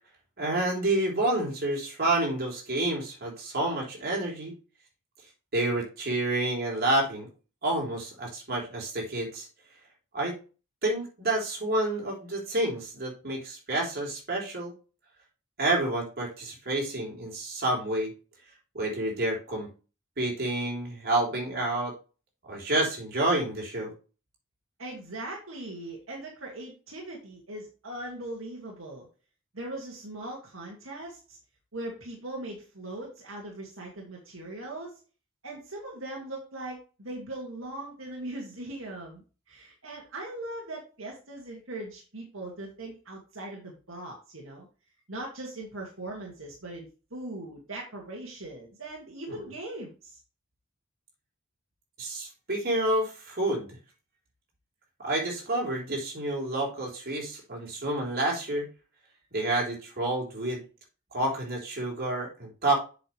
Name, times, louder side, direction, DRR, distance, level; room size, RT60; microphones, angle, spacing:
voice 1, 0.4-4.6 5.5-7.3 7.6-9.5 10.1-10.4 10.8-14.7 15.6-18.1 18.7-19.7 20.2-21.9 22.5-23.9 49.3-49.4 52.0-53.7 55.0-58.7 59.3-60.6 61.1-62.8, right 1 dB, 50° right, -1 dB, 3.8 m, -29 dB
voice 2, 24.8-29.1 29.5-31.4 31.7-35.0 35.4-44.7 45.1-50.2, right 1 dB, 75° right, -1 dB, 2.1 m, -40 dB
7.9 x 6.2 x 3.2 m, 0.33 s
head